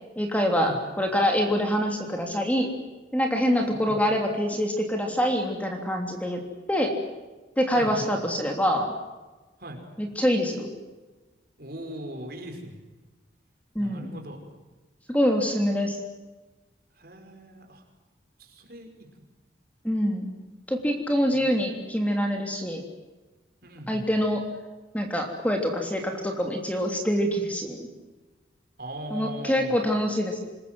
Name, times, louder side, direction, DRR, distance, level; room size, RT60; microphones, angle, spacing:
voice 1, 0.2-2.7 3.1-6.4 6.7-7.0 7.6-8.9 10.0-10.7 13.7-14.2 15.1-16.0 19.8-20.3 20.7-22.8 23.9-24.4 24.9-27.9 29.1-30.4, equal, 10° left, 3 dB, 3.2 m, -25 dB
voice 2, 3.6-4.0 7.7-8.1 9.6-9.8 11.6-12.8 13.8-14.4 17.0-17.8 18.4-19.1 21.3-21.6 23.6-24.1 28.8-29.8, right 1 dB, 55° right, 3 dB, 5.5 m, -39 dB
27.0 x 21.0 x 7.8 m, 1.2 s
head